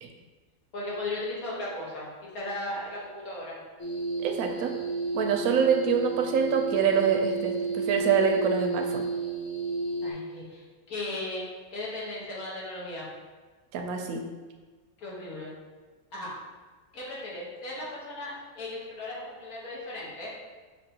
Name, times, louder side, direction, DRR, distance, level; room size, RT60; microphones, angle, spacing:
voice 1, 0.7-2.1 2.3-3.6 10.0-13.1 15.0-15.5 16.1-16.3 16.9-20.3, left 2 dB, 90° left, -7 dB, 1.8 m, -36 dB
sound 1, 3.8-10.1, right 3 dB, 30° left, 0.4 m, -32 dB
voice 2, 4.2-4.7 5.1-9.0 13.7-14.2, right 6 dB, 90° right, 3 dB, 1.1 m, -25 dB
6.0 x 2.9 x 2.8 m, 1.4 s
omnidirectional pair, 1.5 m